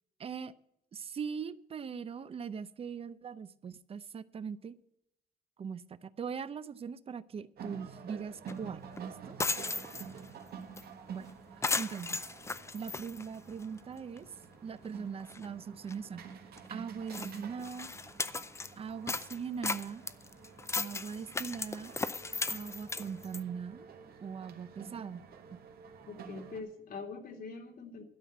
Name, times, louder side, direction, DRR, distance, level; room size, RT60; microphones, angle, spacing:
voice 1, 0.2-0.5 0.9-4.7 5.6-9.4 11.1-11.3 11.8-12.4 12.7-14.3 14.6-16.3 16.7-17.9 18.8-20.0 20.7-21.9 22.5-23.9 24.2-25.2 25.5-25.6, right 6 dB, 40° right, 16 dB, 0.6 m, -41 dB
sound 1, 7.6-26.6, right 6 dB, 80° right, 1.6 m, -50 dB
sound 2, 8.5-8.6 8.9-9.0 9.3-10.3 10.8-10.9 11.1-11.3 11.6-13.8 14.2-14.3 14.9-15.0 15.2-15.5 15.9-16.0 16.6-16.7 17.1-18.7 19.1-23.4, left 3 dB, 20° left, 0.5 m, -36 dB
voice 2, 9.6-10.0 26.1-28.0, left 4 dB, 70° left, 4 dB, 2.3 m, -44 dB
12.5 x 5.8 x 8.9 m, 0.76 s
cardioid pair, 135°, 16 cm